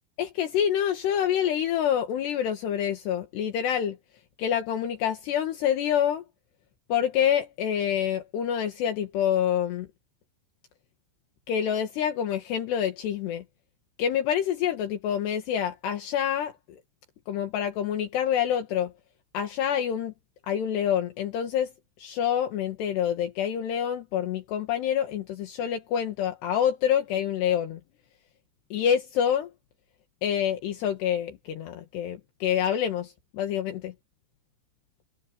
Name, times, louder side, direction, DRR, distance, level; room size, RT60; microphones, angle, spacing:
voice 1, 0.2-4.0 4.4-6.2 6.9-9.9 11.5-13.4 14.0-16.8 17.3-18.9 19.3-20.1 20.5-21.7 22.0-27.8 28.7-29.5 30.2-33.9, left 9 dB, 70° left, 3.8 m, -27 dB
omnidirectional pair, 5.1 m